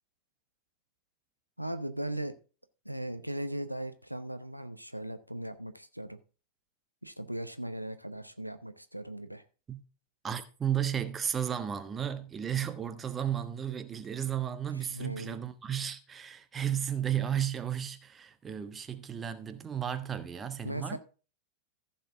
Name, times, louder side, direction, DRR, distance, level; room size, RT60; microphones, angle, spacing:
voice 1, 1.6-2.3 2.8-6.2 7.0-9.4 14.9-15.4 20.6-21.0, right 1 dB, 90° right, 0.8 m, -38 dB
voice 2, 10.2-21.0, right 9 dB, 20° right, 1.2 m, -33 dB
14.5 x 7.0 x 3.5 m
figure-of-eight pair, 90°, 0 cm